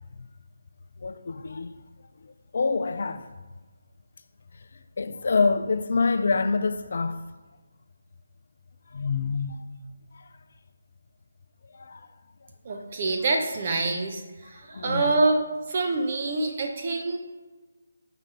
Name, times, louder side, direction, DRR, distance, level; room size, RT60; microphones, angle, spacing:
voice 1, 1.0-1.7 2.2-3.2 4.5-4.7 5.0-7.2 8.9-9.6 10.1-10.3 11.7-12.1 14.7-15.1, left 4 dB, 55° left, 0.3 m, -26 dB
voice 2, 12.6-17.2, right 3 dB, 40° right, 0.7 m, -26 dB
6.3 x 4.0 x 4.2 m
figure-of-eight pair, 155°, 0 cm